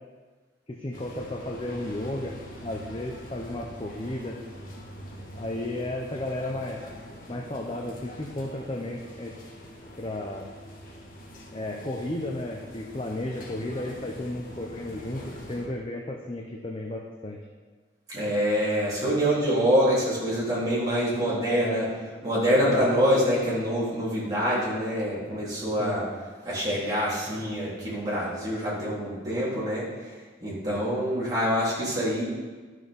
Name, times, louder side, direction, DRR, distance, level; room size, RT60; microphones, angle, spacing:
voice 1, 0.7-2.4 2.6-4.4 5.3-6.8 7.3-9.3 10.0-10.5 11.5-17.4 21.4-21.8 22.7-22.9 25.8-26.0, left 1 dB, 30° left, 0 dB, 0.8 m, -33 dB
sound 1, 0.9-15.7, equal, 45° left, 1.6 m, -44 dB
voice 2, 18.1-21.9 22.2-26.0 26.4-29.8 30.4-32.2, equal, 20° right, -8 dB, 3.5 m, -25 dB
11.5 x 6.4 x 5.3 m, 1.4 s
head